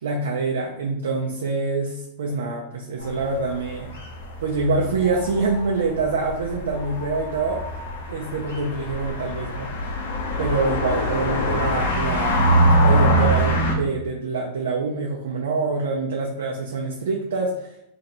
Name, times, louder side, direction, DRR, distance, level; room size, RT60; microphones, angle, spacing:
voice 1, 0.0-3.9 4.4-7.6 8.1-9.7 10.4-12.5 12.8-17.7, right 3 dB, 75° right, -1 dB, 0.6 m, -25 dB
sound 1, 3.0-13.7, equal, 75° left, 1.0 m, -24 dB
2.9 x 2.6 x 4.3 m, 0.84 s
hypercardioid pair, 105°, 0 cm